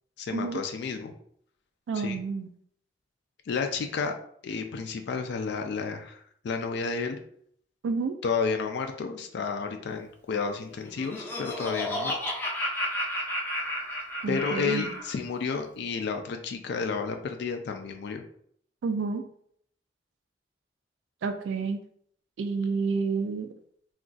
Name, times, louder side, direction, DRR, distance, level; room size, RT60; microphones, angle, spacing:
voice 1, 0.2-1.1 1.9-2.2 3.5-4.1 4.4-7.2 8.2-12.2 14.3-18.2, left 5 dB, 65° left, 5 dB, 0.3 m, -31 dB
voice 2, 1.9-2.5 7.8-8.2 14.2-14.8 18.8-19.2 21.2-21.8 22.4-23.5, right 4 dB, 80° right, 6 dB, 0.3 m, -29 dB
Laughter, 10.7-15.1, left 1 dB, 10° left, 0.5 m, -32 dB
2.4 x 2.4 x 3.8 m, 0.66 s
head